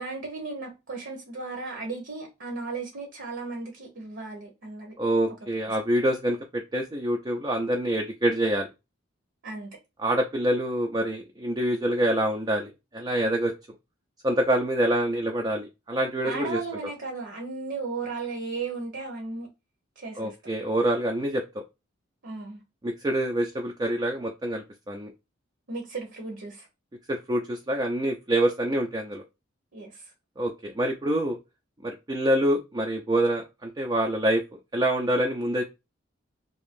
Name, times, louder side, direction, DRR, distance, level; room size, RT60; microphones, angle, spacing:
voice 1, 0.0-4.9 9.4-9.7 16.2-19.5 20.0-20.3 22.2-22.6 25.7-26.7 29.7-30.1, right 3 dB, 60° right, 0.9 m, -35 dB
voice 2, 5.0-8.7 10.0-13.5 14.2-16.6 20.2-21.6 22.8-25.1 27.1-29.2 30.4-31.4 31.8-34.4 34.7-35.6, right 1 dB, 20° right, 0.4 m, -26 dB
2.9 x 2.6 x 3.5 m
head